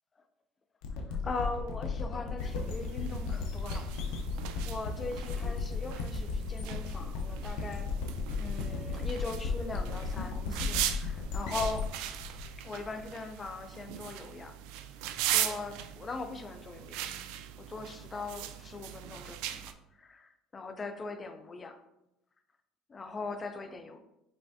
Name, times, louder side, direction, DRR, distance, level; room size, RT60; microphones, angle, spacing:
sound 1, 0.8-13.4, left 4 dB, 85° left, 0.7 m, -35 dB
voice 1, 1.1-3.9 4.6-7.9 8.4-11.8 12.6-14.5 15.3-17.1 17.6-21.8 22.9-24.0, left 3 dB, 20° left, 7 dB, 0.5 m, -40 dB
sound 2, 2.4-19.7, right 11 dB, 80° right, 0.3 m, -39 dB
5.5 x 3.3 x 2.7 m, 0.86 s
cardioid pair, 145°, 0 cm